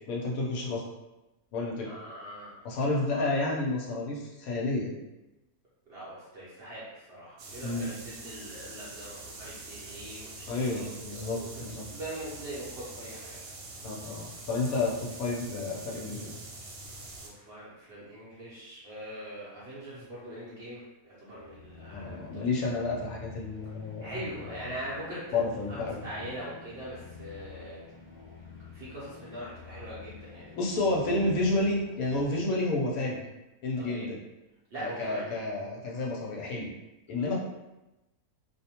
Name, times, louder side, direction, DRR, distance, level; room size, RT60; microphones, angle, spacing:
voice 1, 0.1-0.8 1.5-1.9 2.6-4.9 7.6-7.9 10.5-11.9 13.8-16.3 21.9-24.1 24.4-24.6 25.3-26.0 30.6-33.3 33.6-34.2 34.8-36.7 37.1-37.4, left 2 dB, 75° left, -2 dB, 1.0 m, -30 dB
voice 2, 1.9-3.3 5.9-13.6 17.2-22.5 24.0-25.4 25.7-27.8 28.7-30.7 33.7-34.1 34.7-35.3 37.2-37.3, right 1 dB, 55° right, -8 dB, 0.7 m, -42 dB
sound 1, 7.4-17.3, right 2 dB, 80° right, 1.1 m, -45 dB
sound 2, 21.2-32.9, left 5 dB, 50° left, 0.5 m, -49 dB
2.6 x 2.0 x 2.8 m, 0.98 s
omnidirectional pair, 1.5 m